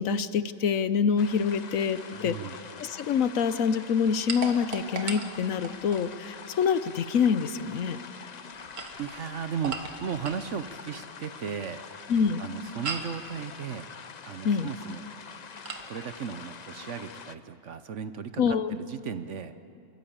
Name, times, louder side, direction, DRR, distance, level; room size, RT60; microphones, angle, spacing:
voice 1, 0.0-2.4 2.8-8.0 12.1-12.4 14.4-14.7 18.4-18.8, left 6 dB, 65° left, 13 dB, 1.1 m, -26 dB
sound 1, 1.2-17.4, left 6 dB, 45° left, 0.5 m, -45 dB
voice 2, 2.1-2.6 9.0-11.8 12.4-13.9 14.2-15.0 15.9-19.5, right 7 dB, 60° right, 11 dB, 1.1 m, -36 dB
sound 2, 4.3-6.1 8.5-10.5 12.8-13.2 15.6-15.9, right 4 dB, 85° right, 2.0 m, -37 dB
25.5 x 22.5 x 8.8 m, 2.7 s
omnidirectional pair, 1.6 m